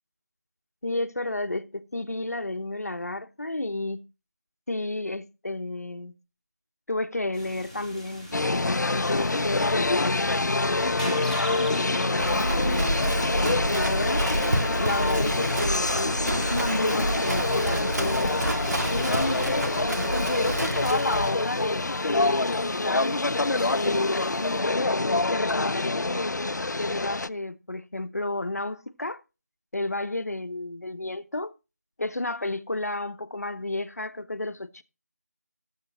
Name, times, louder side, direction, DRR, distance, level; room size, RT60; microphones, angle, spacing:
voice 1, 0.8-4.0 4.7-6.1 6.9-12.9 13.3-14.3 14.8-18.3 18.9-23.2 23.7-26.4 26.8-29.2 29.7-31.5 32.0-34.8, left 2 dB, 60° left, 0.9 m, -31 dB
sound 1, 7.3-24.6, equal, 10° right, 2.4 m, -42 dB
sound 2, 8.3-27.3, left 2 dB, 85° left, 0.6 m, -26 dB
Livestock farm animals working animals, 12.2-21.3, right 1 dB, 75° right, 1.8 m, -29 dB
19.0 x 7.5 x 3.0 m
figure-of-eight pair, 180°, 9 cm